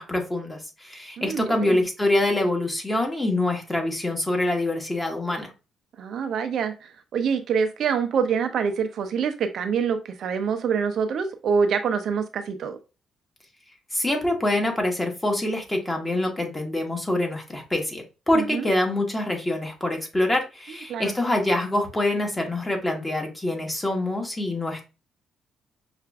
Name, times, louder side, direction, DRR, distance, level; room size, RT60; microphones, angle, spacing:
voice 1, 0.0-5.5 13.9-24.8, left 1 dB, 15° left, 2 dB, 1.1 m, -25 dB
voice 2, 1.2-1.8 6.0-12.8 18.3-18.7 20.9-21.1, right 6 dB, 65° right, 7 dB, 0.4 m, -26 dB
5.6 x 2.4 x 2.3 m, 0.30 s
cardioid pair, 90°, 0 cm